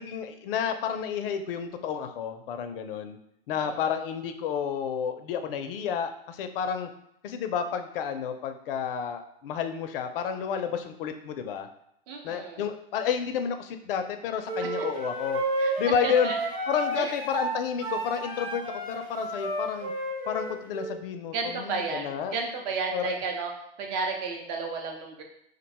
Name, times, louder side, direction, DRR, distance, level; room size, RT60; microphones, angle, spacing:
voice 1, 0.0-3.2 3.5-6.9 7.2-11.7 12.2-15.4 15.8-16.3 16.7-19.9 20.3-22.3 22.9-23.1, left 7 dB, 60° left, 7 dB, 0.5 m, -30 dB
voice 2, 12.1-12.7 14.6-15.1 15.6-16.4 16.9-17.1 21.3-23.5 23.8-25.2, right 4 dB, 40° right, 2 dB, 0.7 m, -33 dB
sound 1, 14.5-21.0, right 2 dB, 85° right, 1.4 m, -32 dB
2.5 x 2.2 x 4.0 m, 0.74 s
hypercardioid pair, 130°, 31 cm